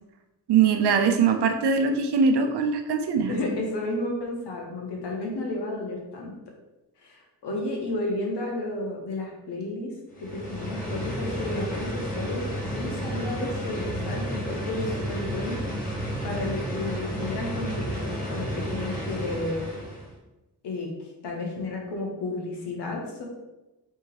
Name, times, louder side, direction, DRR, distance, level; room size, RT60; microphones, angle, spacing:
voice 1, 0.5-3.6, right 5 dB, 85° right, 5 dB, 0.7 m, -22 dB
voice 2, 3.3-6.3 7.0-9.9 10.2-15.6 16.2-19.6 20.6-20.9 21.2-23.2, left 2 dB, 85° left, -1 dB, 1.2 m, -32 dB
sound 1, 10.1-20.1, equal, 20° left, 1.4 m, -32 dB
3.5 x 2.9 x 4.5 m, 1.0 s
cardioid pair, 100°, 40 cm